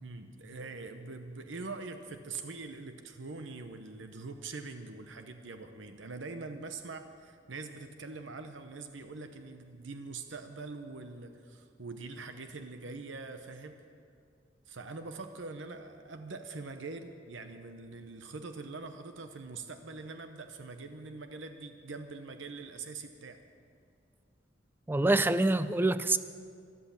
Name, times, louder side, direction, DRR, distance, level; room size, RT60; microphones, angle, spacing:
voice 1, 0.0-13.8 14.7-23.4, right 3 dB, 80° right, 0.9 m, -43 dB
voice 2, 24.9-26.2, right 2 dB, 10° right, 0.4 m, -26 dB
13.5 x 12.5 x 7.3 m
head